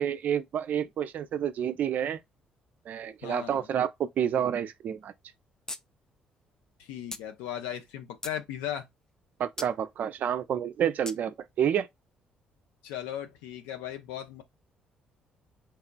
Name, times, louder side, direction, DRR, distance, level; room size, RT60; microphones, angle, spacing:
voice 1, 0.0-2.2 2.9-5.1 9.4-11.9, right 9 dB, 50° right, 0.3 m, -29 dB
voice 2, 3.2-3.7 6.8-8.9 12.8-14.4, left 10 dB, 70° left, 0.5 m, -37 dB
sound 1, 5.7-5.8 6.1-6.2 7.1-7.2 7.9-8.4 9.6-9.7 11.1-11.2, left 2 dB, 15° left, 0.4 m, -39 dB
2.9 x 2.3 x 2.2 m
figure-of-eight pair, 45°, 4 cm